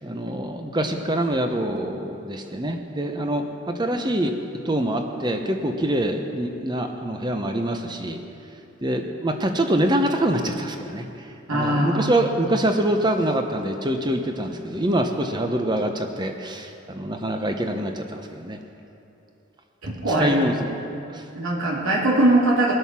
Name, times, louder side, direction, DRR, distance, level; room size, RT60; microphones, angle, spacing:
voice 1, 0.0-4.3 4.6-8.2 8.8-11.1 11.5-18.6 20.2-20.7 21.1-21.2, right 1 dB, 20° right, 5 dB, 0.9 m, -25 dB
voice 2, 11.5-12.1 19.8-20.4 20.9-21.0 21.3-22.7, right 1 dB, 85° right, -5 dB, 2.6 m, -21 dB
20.5 x 7.9 x 5.9 m, 3.0 s
head